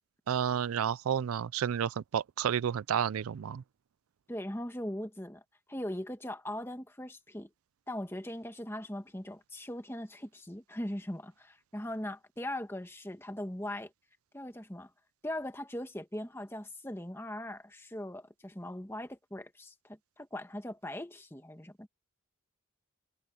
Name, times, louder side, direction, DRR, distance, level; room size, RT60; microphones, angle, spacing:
voice 1, 0.3-3.6, right 8 dB, 90° right, 0.4 m, -31 dB
voice 2, 4.3-5.4 5.7-7.5 7.9-13.9 14.3-14.9 15.2-21.9, left 1 dB, 10° left, 1.5 m, -40 dB
head